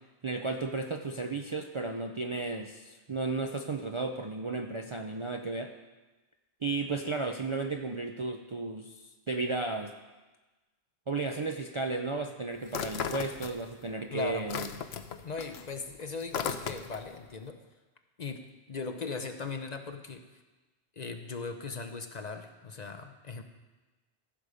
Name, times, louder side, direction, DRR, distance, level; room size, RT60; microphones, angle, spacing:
voice 1, 0.2-5.7 6.6-9.0 9.3-9.9 11.1-14.7, right 3 dB, 40° right, 3 dB, 0.4 m, -34 dB
sound 1, 12.7-13.9 14.2-17.2, left 7 dB, 70° left, 0.9 m, -36 dB
voice 2, 14.1-14.5 15.2-17.6 18.2-18.4 18.7-20.2 21.0-23.4, left 4 dB, 45° left, 6 dB, 0.7 m, -38 dB
15.0 x 6.7 x 4.9 m, 1.2 s
omnidirectional pair, 1.1 m